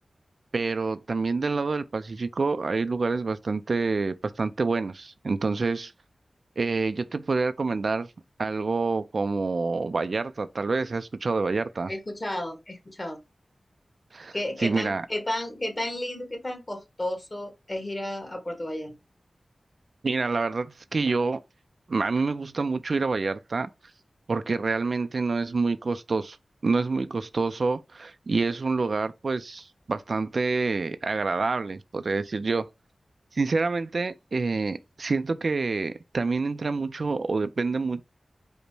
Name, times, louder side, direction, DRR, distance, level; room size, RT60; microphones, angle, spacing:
voice 1, 0.5-5.9 6.6-8.1 8.4-11.9 14.1-15.1 20.0-21.4 21.9-23.7 24.3-26.4 26.6-32.7 33.3-38.0, right 4 dB, 60° right, 0.3 m, -27 dB
voice 2, 11.9-13.2 14.3-18.9, left 1 dB, 30° left, 1.3 m, -32 dB
5.1 x 2.1 x 4.6 m
wide cardioid pair, 100°, 0 cm